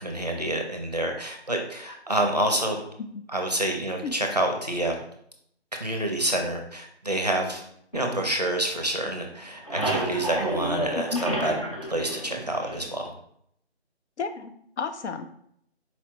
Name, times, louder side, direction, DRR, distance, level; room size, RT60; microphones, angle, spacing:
voice 1, 0.0-2.8 3.3-5.0 5.8-7.6 7.9-11.5 11.9-13.1, right 1 dB, 40° right, 2 dB, 0.5 m, -28 dB
sound 1, 7.9-9.1 9.4-13.1, right 1 dB, 35° left, 0.5 m, -31 dB
voice 2, 10.9-11.5 14.2-15.3, left 5 dB, 85° left, 8 dB, 0.6 m, -32 dB
4.2 x 2.0 x 4.3 m, 0.70 s
figure-of-eight pair, 180°, 33 cm